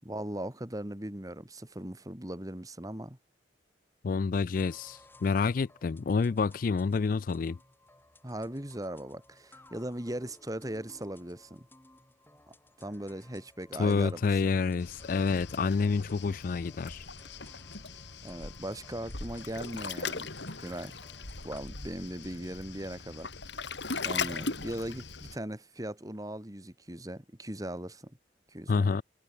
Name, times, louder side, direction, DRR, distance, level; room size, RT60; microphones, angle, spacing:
voice 1, 0.0-3.2 8.2-11.7 12.5-14.3 18.2-20.3 20.6-21.0 21.4-23.3 24.0-28.1 28.5-28.9, right 1 dB, 20° right, 2.3 m, -39 dB
voice 2, 4.0-7.6 13.7-17.0 28.7-29.0, left 4 dB, 50° left, 0.4 m, -28 dB
sound 1, 4.5-21.6, left 1 dB, 10° left, 7.5 m, -59 dB
Waves surf, 14.8-25.4, left 4 dB, 75° left, 4.4 m, -39 dB
head